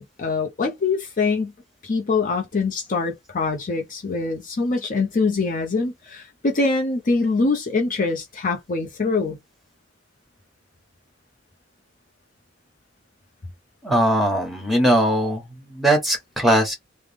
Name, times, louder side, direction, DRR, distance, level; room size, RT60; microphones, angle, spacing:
voice 1, 0.0-1.5 1.8-9.4, left 3 dB, 40° left, 0.6 m, -24 dB
voice 2, 13.8-16.8, right 1 dB, ahead, 1.3 m, -20 dB
3.3 x 2.1 x 3.4 m
head